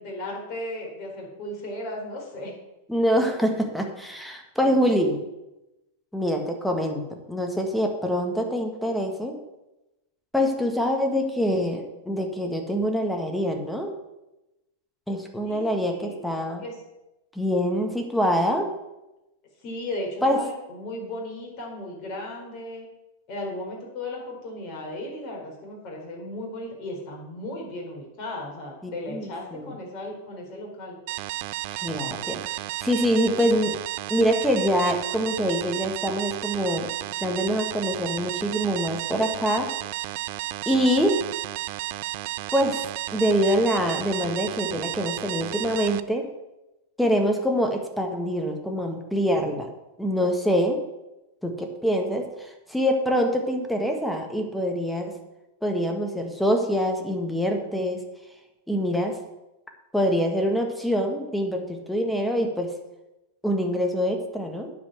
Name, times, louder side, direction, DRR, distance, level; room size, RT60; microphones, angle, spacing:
voice 1, 0.0-2.5 15.4-16.2 16.6-16.8 19.6-22.9 23.3-31.0, left 1 dB, 45° left, -1 dB, 4.3 m, -36 dB
voice 2, 2.9-5.2 6.1-7.0 7.3-9.4 10.3-13.9 15.1-16.6 17.4-18.7 20.2-20.4 28.8-29.7 31.7-32.5 32.8-33.8 34.1-36.9 37.2-39.7 40.7-41.2 42.5-46.3 47.0-49.7 50.0-50.8 51.4-55.2 55.6-58.1 58.7-59.2 59.9-62.7 63.4-64.7, equal, 5° left, 3 dB, 1.7 m, -25 dB
sound 1, 31.1-46.0, right 17 dB, 55° right, 0.4 m, -32 dB
9.6 x 5.1 x 7.8 m, 0.97 s
hypercardioid pair, 100°, 0 cm